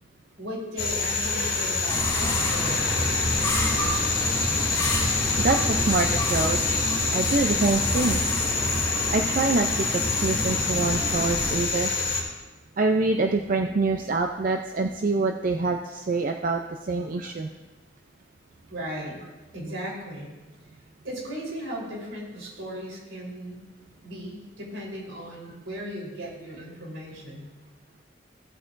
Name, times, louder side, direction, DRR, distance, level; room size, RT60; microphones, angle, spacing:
voice 1, 0.4-2.8 18.7-19.2 19.5-20.3 21.0-23.6 24.0-27.4, equal, 85° right, -3 dB, 3.8 m, -36 dB
sound 1, 0.8-12.2, left 3 dB, 50° left, 2.5 m, -26 dB
sound 2, 1.9-11.6, left 1 dB, 20° left, 2.4 m, -29 dB
voice 2, 5.4-6.8 7.1-8.2 9.1-11.9 12.8-17.5, right 3 dB, 45° right, 4 dB, 0.5 m, -25 dB
16.5 x 8.3 x 2.6 m, 1.1 s
head